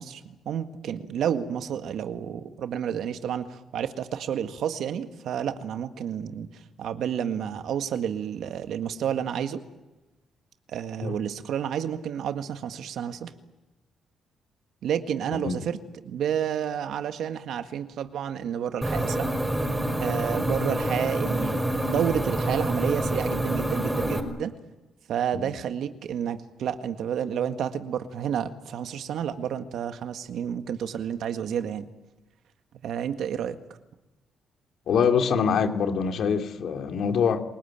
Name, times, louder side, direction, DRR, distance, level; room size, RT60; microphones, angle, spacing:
voice 1, 0.0-6.5 6.8-9.6 10.7-13.3 14.8-15.8 16.0-19.3 20.0-21.6 21.8-24.5 25.1-31.9 32.8-33.6, right 9 dB, 75° right, 8 dB, 1.8 m, -30 dB
sound 1, 18.8-24.2, right 1 dB, 10° right, 5.1 m, -27 dB
voice 2, 34.9-37.4, left 6 dB, 65° left, 5 dB, 2.6 m, -24 dB
29.0 x 19.0 x 8.9 m, 1.0 s
cardioid pair, 90°, 0 cm